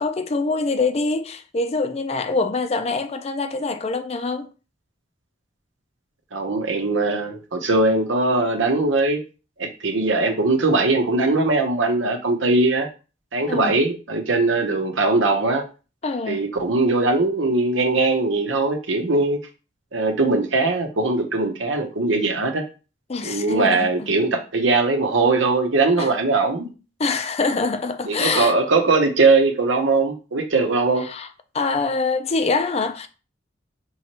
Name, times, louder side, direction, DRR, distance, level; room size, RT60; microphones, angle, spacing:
voice 1, 0.0-4.5 13.5-13.8 16.0-16.4 23.1-24.1 26.0-26.1 27.0-28.5 31.0-31.3 31.5-33.1, left 3 dB, 35° left, 0.5 m, -24 dB
voice 2, 6.3-9.2 9.6-12.9 13.3-15.6 16.3-19.4 19.9-22.6 23.2-26.7 28.1-31.1, right 3 dB, 85° right, 0.9 m, -20 dB
5.6 x 3.1 x 2.9 m
head